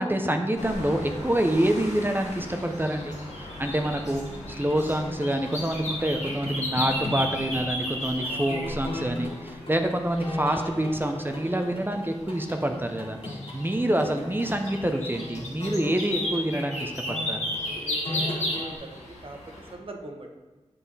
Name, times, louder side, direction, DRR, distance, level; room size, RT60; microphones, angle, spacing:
voice 1, 0.0-17.4, right 1 dB, 20° right, 4 dB, 0.7 m, -27 dB
sound 1, 0.6-19.7, left 1 dB, 80° left, 1.8 m, -35 dB
sound 2, 4.3-18.8, left 1 dB, 50° left, 1.6 m, -38 dB
voice 2, 13.2-13.7 17.6-19.4 19.7-20.3, right 2 dB, 50° right, 2 dB, 1.1 m, -42 dB
8.0 x 5.6 x 4.1 m, 1.2 s
cardioid pair, 50°, 12 cm